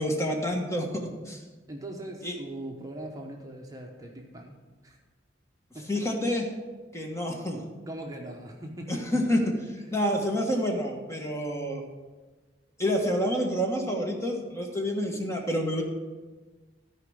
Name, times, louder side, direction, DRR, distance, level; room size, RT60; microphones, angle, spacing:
voice 1, 0.0-1.4 2.2-2.3 5.9-6.5 6.9-7.6 8.9-9.4 9.9-11.8 12.8-15.8, equal, 15° left, 1 dB, 1.4 m, -28 dB
voice 2, 1.7-5.0 5.7-5.9 7.9-9.2, right 1 dB, 20° right, 1 dB, 1.0 m, -40 dB
13.5 x 5.1 x 6.4 m, 1.3 s
head